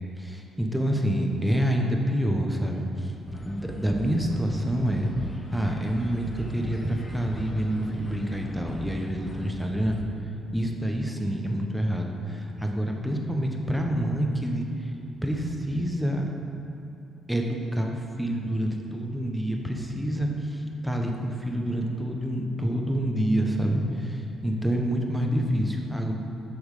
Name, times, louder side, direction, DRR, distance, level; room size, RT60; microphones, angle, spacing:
voice 1, 0.2-3.1 3.4-5.1 5.5-10.0 10.5-14.9 15.2-16.3 17.3-26.1, equal, 5° right, 1 dB, 1.1 m, -27 dB
sound 1, 3.3-10.0, equal, 25° left, 1.0 m, -39 dB
8.5 x 6.3 x 5.0 m, 3.0 s
cardioid pair, 90°, 0 cm